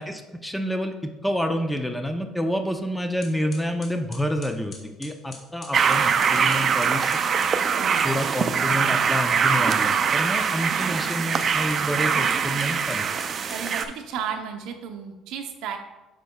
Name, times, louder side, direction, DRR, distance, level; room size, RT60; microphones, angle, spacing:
voice 1, 0.0-7.1 8.0-13.1, equal, 5° left, 6 dB, 0.6 m, -28 dB
sound 1, 3.2-7.6 10.7-14.4, left 3 dB, 40° left, 1.4 m, -46 dB
sound 2, 5.7-13.9, right 6 dB, 45° right, 0.4 m, -23 dB
voice 2, 7.7-8.1 10.3-10.5 10.7-11.0 13.5-15.8, right 7 dB, 75° right, 4 dB, 0.7 m, -34 dB
8.2 x 5.2 x 2.3 m, 1.1 s
cardioid pair, 100°, 0 cm